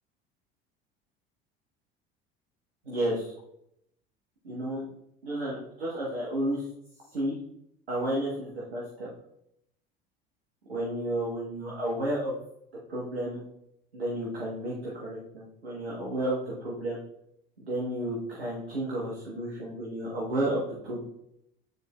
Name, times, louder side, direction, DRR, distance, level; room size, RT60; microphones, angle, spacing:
voice 1, 2.8-3.3 4.4-4.9 5.2-6.6 7.1-7.4 7.9-9.1 10.7-12.3 12.9-13.4 13.9-17.0 17.7-21.0, right 1 dB, 90° right, -5 dB, 1.4 m, -32 dB
9.3 x 4.3 x 2.4 m, 0.77 s
hypercardioid pair, 70°, 30 cm